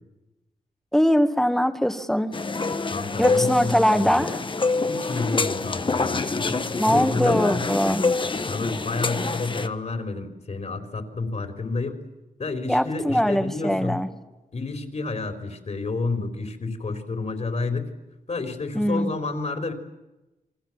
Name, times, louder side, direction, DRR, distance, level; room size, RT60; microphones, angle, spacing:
voice 1, 0.9-2.3 3.2-4.4 6.8-8.0 12.7-14.1 18.7-19.1, equal, 5° left, 9 dB, 2.0 m, -22 dB
sound 1, 2.3-9.7, left 3 dB, 35° left, 1.4 m, -26 dB
voice 2, 2.9-4.2 4.9-7.7 8.5-12.0 12.4-14.0 14.5-17.9 18.3-19.7, left 3 dB, 50° left, 7 dB, 4.0 m, -30 dB
29.0 x 23.5 x 7.5 m, 1.0 s
wide cardioid pair, 105°, 14 cm